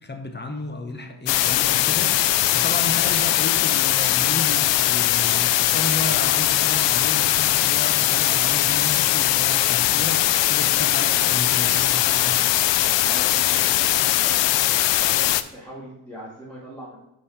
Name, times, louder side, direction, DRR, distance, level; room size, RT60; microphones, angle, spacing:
voice 1, 0.0-12.4, left 2 dB, 25° left, 6 dB, 0.9 m, -33 dB
sound 1, 1.3-15.4, left 14 dB, 80° left, 0.5 m, -20 dB
voice 2, 13.0-14.6 14.9-17.0, equal, 5° left, -7 dB, 2.2 m, -40 dB
5.2 x 5.1 x 5.7 m, 0.84 s
cardioid pair, 80°, 43 cm